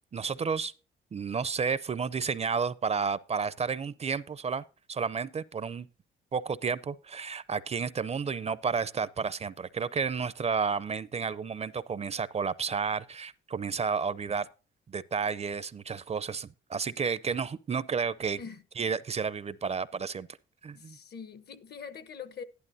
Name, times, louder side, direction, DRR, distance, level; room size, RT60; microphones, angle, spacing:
voice 1, 0.1-0.7 1.1-5.9 6.3-14.5 14.9-18.4 18.8-20.3 20.6-21.0, right 5 dB, 30° right, 0.5 m, -31 dB
voice 2, 20.7-22.4, left 6 dB, 55° left, 1.0 m, -43 dB
11.5 x 11.5 x 2.7 m
cardioid pair, 90°, 20 cm